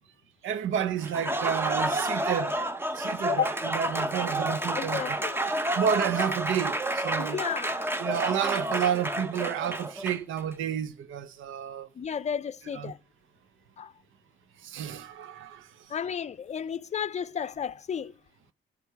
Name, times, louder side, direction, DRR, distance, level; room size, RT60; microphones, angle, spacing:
voice 1, 0.4-2.6 2.9-5.0 5.7-7.4 8.0-11.9 12.8-12.9 14.6-15.7, right 9 dB, 80° right, 0.9 m, -30 dB
Applause, 1.0-10.4, right 1 dB, 10° right, 0.9 m, -30 dB
voice 2, 4.7-5.4 7.2-7.9 12.0-13.0 13.8-13.9 15.9-18.1, left 7 dB, 35° left, 0.6 m, -32 dB
13.0 x 5.4 x 8.2 m
cardioid pair, 90°, 20 cm